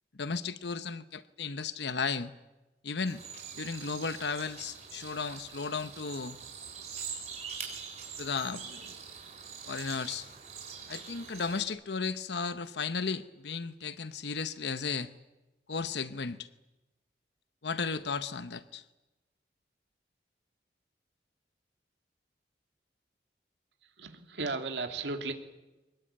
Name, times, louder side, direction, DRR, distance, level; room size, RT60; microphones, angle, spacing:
voice 1, 0.2-2.3 2.8-3.2 3.5-6.4 7.6-7.7 8.2-9.0 9.7-10.3 10.9-15.1 15.7-16.5 17.6-18.8, left 5 dB, 75° left, 13 dB, 0.9 m, -35 dB
sound 1, 3.1-11.6, right 6 dB, 40° right, 5.5 m, -44 dB
voice 2, 23.8-25.3, right 3 dB, 80° right, 6 dB, 2.7 m, -35 dB
24.0 x 21.0 x 8.9 m, 1.0 s
head